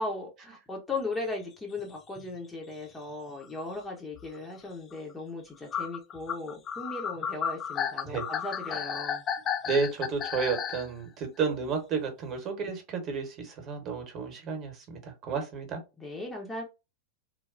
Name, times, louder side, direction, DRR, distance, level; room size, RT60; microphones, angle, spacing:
voice 1, 0.0-9.2 16.0-16.6, left 2 dB, 10° left, 0.8 m, -37 dB
sound 1, 1.8-1.9 2.2-2.4 3.1-3.2 3.4-3.5 4.2-4.4 4.9-5.0 5.7-10.9, left 8 dB, 30° left, 0.3 m, -33 dB
voice 2, 9.6-15.8, right 5 dB, 35° right, 1.0 m, -32 dB
3.2 x 2.2 x 2.5 m
figure-of-eight pair, 90°, 0 cm